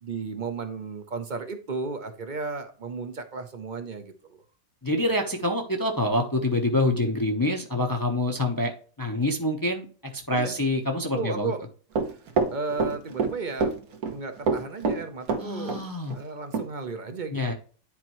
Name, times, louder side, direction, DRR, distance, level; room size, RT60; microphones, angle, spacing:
voice 1, 0.0-4.4 10.3-10.5 11.0-11.7 12.0-12.2 12.5-13.7 14.1-15.8 16.1-17.5, right 4 dB, 40° right, 7 dB, 0.8 m, -34 dB
voice 2, 4.8-8.7 9.0-11.5 15.4-16.2 17.3-17.5, left 1 dB, 15° left, 3 dB, 0.7 m, -26 dB
Run, 12.0-13.3 13.6-14.2 14.5-15.8 16.1-16.2 16.5-16.7, right 4 dB, 65° right, 1.5 m, -25 dB
10.0 x 4.4 x 3.0 m, 0.40 s
omnidirectional pair, 1.7 m